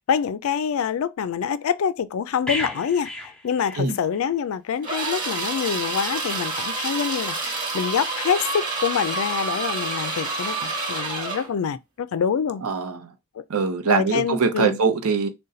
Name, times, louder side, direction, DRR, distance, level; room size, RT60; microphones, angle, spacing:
voice 1, 0.0-12.6 13.4-13.5 13.9-14.8, left 7 dB, 70° left, 0.3 m, -26 dB
sound 1, 2.5-4.4 4.7-4.9, left 2 dB, 5° left, 0.7 m, -33 dB
sound 2, 4.8-11.5, right 3 dB, 35° right, 1.2 m, -28 dB
voice 2, 12.6-13.1 13.5-15.3, right 5 dB, 75° right, 0.6 m, -23 dB
3.8 x 2.2 x 4.0 m
head